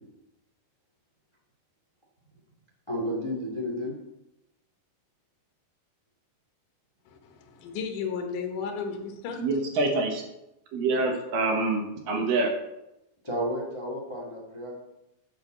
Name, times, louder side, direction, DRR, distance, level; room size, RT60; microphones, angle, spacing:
voice 1, 2.9-3.9 13.2-14.7, equal, 30° left, -3 dB, 0.4 m, -32 dB
voice 2, 7.1-9.5, left 5 dB, 65° left, 3 dB, 2.5 m, -34 dB
voice 3, 9.4-10.2 10.7-12.5, right 3 dB, 65° right, 2 dB, 2.7 m, -26 dB
8.7 x 5.0 x 7.4 m, 0.90 s
omnidirectional pair, 4.5 m